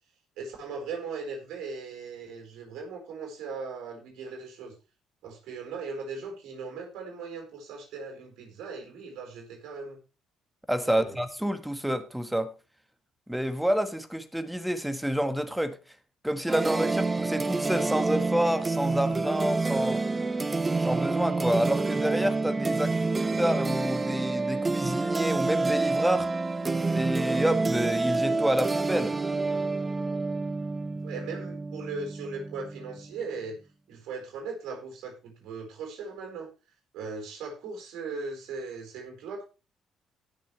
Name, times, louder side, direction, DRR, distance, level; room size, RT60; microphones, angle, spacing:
voice 1, 0.4-4.7 5.2-10.0 10.8-11.1 31.0-33.6 33.9-36.5 36.9-39.5, right 4 dB, 75° right, 4.5 m, -38 dB
voice 2, 10.7-12.5 13.3-15.8 16.2-20.0 20.8-26.3 26.9-29.2, equal, 5° right, 1.6 m, -28 dB
sound 1, 16.5-33.1, right 3 dB, 25° right, 0.8 m, -28 dB
17.5 x 6.3 x 3.3 m
supercardioid pair, 65°, 0 cm